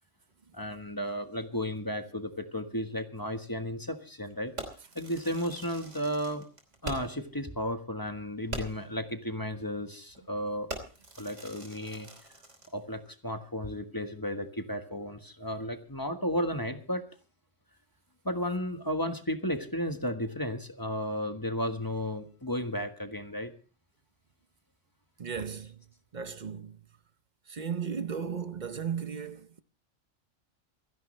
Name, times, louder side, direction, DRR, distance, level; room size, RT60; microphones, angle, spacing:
voice 1, 0.5-4.5 4.9-6.5 6.8-10.7 11.2-12.1 12.7-17.0 18.2-23.5, equal, 15° left, 1.3 m, -33 dB
Fireworks, 4.6-7.3 7.6-7.7 8.1-8.2 8.5-9.0 9.6-9.8 10.1-10.3 10.7-12.8, right 1 dB, 70° right, 3.5 m, -42 dB
voice 2, 25.2-25.8 26.1-26.8 27.5-29.6, right 7 dB, 40° right, 0.8 m, -35 dB
27.0 x 10.5 x 3.2 m
omnidirectional pair, 1.3 m